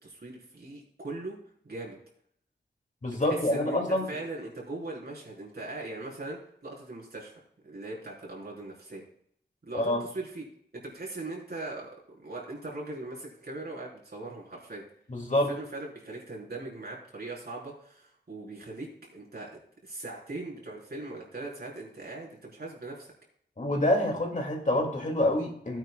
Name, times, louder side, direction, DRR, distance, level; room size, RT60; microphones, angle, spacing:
voice 1, 0.0-1.4 1.6-2.0 3.2-9.0 9.6-10.4 10.7-11.9 12.2-14.8 15.5-23.1, right 2 dB, 60° right, -4 dB, 4.0 m, -40 dB
voice 2, 3.0-4.1 9.7-10.0 15.1-15.5 23.6-25.8, left 1 dB, 45° left, 1 dB, 2.3 m, -27 dB
16.0 x 9.4 x 2.3 m, 0.67 s
wide cardioid pair, 100°, 18 cm